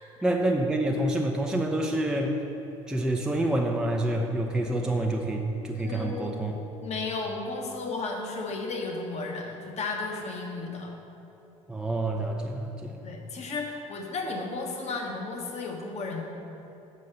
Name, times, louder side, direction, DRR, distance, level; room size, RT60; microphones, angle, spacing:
voice 1, 0.2-2.4 2.9-6.6 11.7-13.0, right 1 dB, 5° right, 1 dB, 0.6 m, -27 dB
voice 2, 5.8-10.9 13.0-16.2, left 3 dB, 40° left, 1 dB, 1.3 m, -34 dB
6.4 x 5.4 x 6.8 m, 2.9 s
figure-of-eight pair, 60°, 18 cm